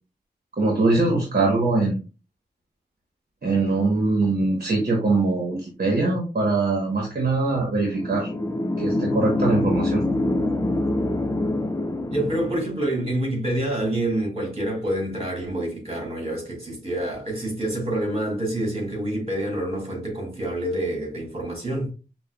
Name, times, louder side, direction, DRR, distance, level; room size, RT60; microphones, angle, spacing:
voice 1, 0.6-2.0 3.4-8.3 8.8-10.1, right 3 dB, 60° right, 1.0 m, -22 dB
sound 1, 7.9-12.8, left 1 dB, 20° left, 0.5 m, -25 dB
voice 2, 12.1-21.9, right 1 dB, 35° right, 2.0 m, -27 dB
5.4 x 2.2 x 2.2 m
cardioid pair, 45°, 17 cm